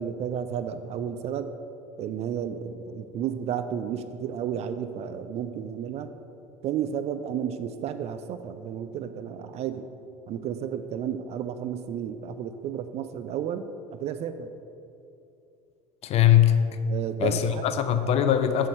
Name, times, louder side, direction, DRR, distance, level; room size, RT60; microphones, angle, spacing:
voice 1, 0.0-1.5 2.0-6.1 6.6-9.9 10.3-13.7 14.0-14.5 16.9-17.6, right 8 dB, 35° right, 10 dB, 0.4 m, -32 dB
voice 2, 16.0-16.6 17.2-18.7, left 10 dB, 35° left, 9 dB, 0.5 m, -21 dB
6.3 x 6.3 x 4.2 m, 2.7 s
figure-of-eight pair, 65°, 18 cm